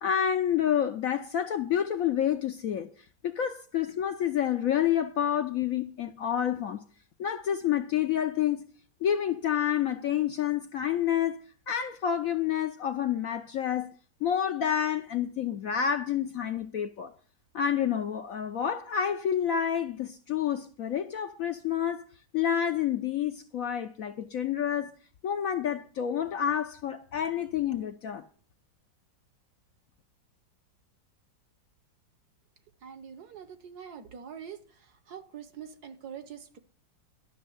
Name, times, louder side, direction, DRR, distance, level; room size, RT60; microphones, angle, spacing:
voice 1, 0.0-2.9 3.2-6.8 7.2-8.7 9.0-11.4 11.7-13.9 14.2-17.1 17.5-22.0 22.3-24.9 25.2-28.2, left 9 dB, 65° left, 0.9 m, -28 dB
voice 2, 32.8-34.6 35.1-36.6, right 8 dB, 60° right, 1.5 m, -44 dB
12.0 x 6.5 x 7.7 m
omnidirectional pair, 2.0 m